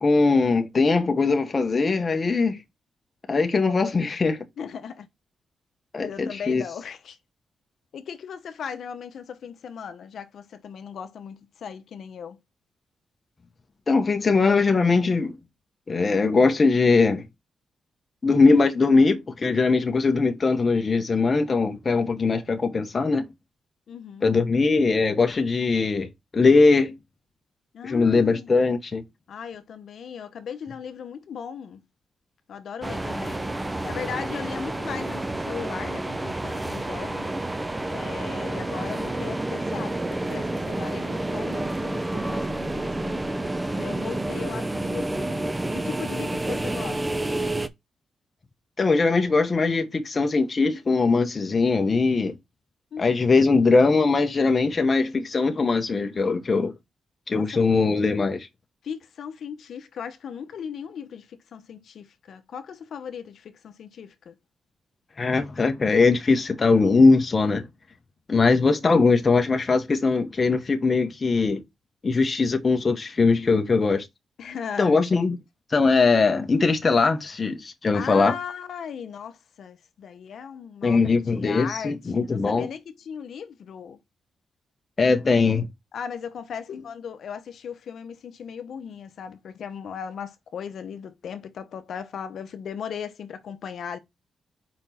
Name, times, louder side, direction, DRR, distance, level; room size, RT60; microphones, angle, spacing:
voice 1, 0.0-2.6 3.3-4.4 5.9-6.6 13.9-15.3 15.9-17.2 18.2-23.3 24.2-26.1 26.3-26.9 27.8-29.0 48.8-52.3 53.0-56.7 57.3-58.5 65.2-67.6 68.3-71.6 72.0-74.1 74.8-75.4 75.7-78.3 80.8-82.7 85.0-85.7, left 4 dB, 35° left, 1.0 m, -21 dB
voice 2, 4.6-5.1 6.0-7.2 7.9-12.4 23.9-24.3 27.7-28.5 29.3-31.8 32.5-37.6 37.9-43.2 43.7-45.4 45.7-47.2 52.9-53.3 57.3-57.5 58.8-64.4 74.4-75.0 77.9-84.0 85.9-94.0, left 7 dB, 70° left, 0.8 m, -37 dB
sound 1, 32.8-47.7, right 2 dB, 15° right, 0.6 m, -29 dB
5.1 x 4.4 x 4.3 m
cardioid pair, 105°, 0 cm